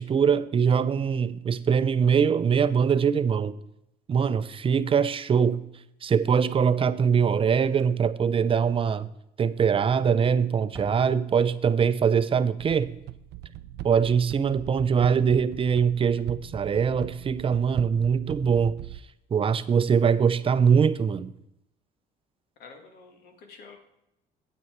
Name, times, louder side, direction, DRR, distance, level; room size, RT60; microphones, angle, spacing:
voice 1, 0.0-3.6 4.1-5.6 6.0-9.1 9.4-12.9 13.8-18.8 19.3-21.3, right 6 dB, 30° right, 13 dB, 0.6 m, -23 dB
Slam, 7.5-8.2 8.5-8.6 9.0-9.1 9.9-10.3 10.6-11.9 14.5-14.6 14.9-15.1 16.6-16.8, right 3 dB, 15° right, 1.9 m, -51 dB
sound 1, 12.6-19.0, right 13 dB, 75° right, 0.5 m, -40 dB
voice 2, 22.6-23.8, left 4 dB, 70° left, 5 dB, 2.2 m, -48 dB
9.6 x 8.5 x 4.5 m, 0.82 s
cardioid pair, 110°, 17 cm